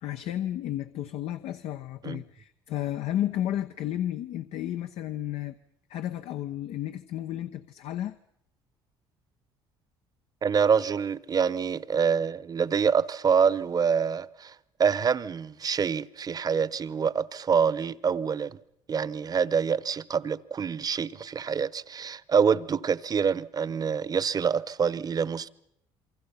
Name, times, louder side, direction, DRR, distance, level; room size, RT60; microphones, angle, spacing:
voice 1, 0.0-5.6 5.9-8.2, left 12 dB, 70° left, 1.0 m, -32 dB
voice 2, 10.4-14.5 14.8-18.6 18.9-25.5, right 6 dB, 35° right, 0.9 m, -26 dB
28.5 x 24.0 x 5.8 m
supercardioid pair, 85°, 11 cm